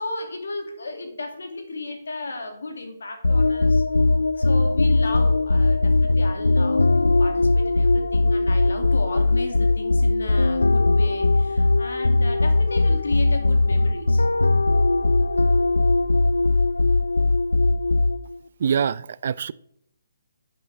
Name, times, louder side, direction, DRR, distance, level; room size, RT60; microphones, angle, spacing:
voice 1, 0.0-3.8 4.4-14.3, left 2 dB, 75° left, 2.3 m, -34 dB
sound 1, 3.2-18.4, left 2 dB, 90° left, 0.3 m, -19 dB
voice 2, 18.6-19.5, right 7 dB, 55° right, 0.4 m, -24 dB
11.5 x 7.8 x 3.4 m
figure-of-eight pair, 145°, 0 cm